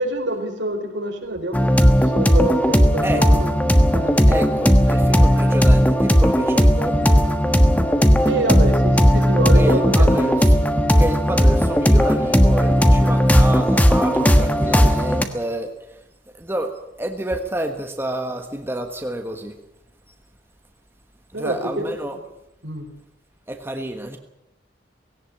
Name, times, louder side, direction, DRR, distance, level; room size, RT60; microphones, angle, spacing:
voice 1, 0.0-3.5 3.9-4.2 8.2-10.4 14.1-14.4 21.3-22.2 22.6-22.9, right 1 dB, 75° right, 3 dB, 4.5 m, -26 dB
sound 1, 1.5-15.2, equal, 10° left, 1.3 m, -16 dB
voice 2, 3.0-3.6 4.3-7.4 9.5-10.6 11.0-16.0 16.3-19.6 20.1-20.2 21.3-22.2 23.5-24.2, right 1 dB, 10° right, 5 dB, 1.4 m, -29 dB
18.0 x 17.5 x 8.7 m, 0.87 s
head